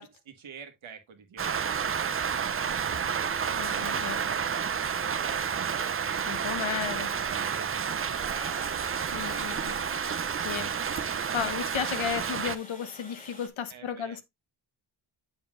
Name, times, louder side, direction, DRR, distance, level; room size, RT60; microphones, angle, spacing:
voice 1, 0.0-10.6 11.9-12.5 13.7-14.2, right 6 dB, 80° right, 1.6 m, -50 dB
Rain, 1.4-12.6, right 7 dB, 30° right, 0.4 m, -30 dB
voice 2, 3.5-4.2 6.3-7.1 9.1-9.8 10.4-10.7 11.0-14.2, left 8 dB, 75° left, 1.1 m, -34 dB
Water, 8.2-13.5, left 2 dB, 15° left, 1.7 m, -49 dB
7.4 x 6.9 x 2.4 m
wide cardioid pair, 100°, 47 cm